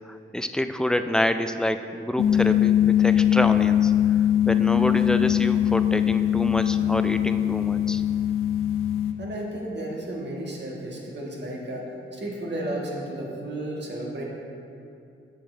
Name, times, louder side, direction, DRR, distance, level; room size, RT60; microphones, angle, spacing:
voice 1, 0.1-3.9 4.5-8.0, left 1 dB, 5° left, 9 dB, 0.3 m, -27 dB
sound 1, 2.2-9.1, left 10 dB, 85° left, 0.5 m, -21 dB
voice 2, 9.2-14.2, right 1 dB, 55° right, -2 dB, 1.5 m, -33 dB
7.8 x 6.5 x 3.3 m, 2.6 s
cardioid pair, 70°, 21 cm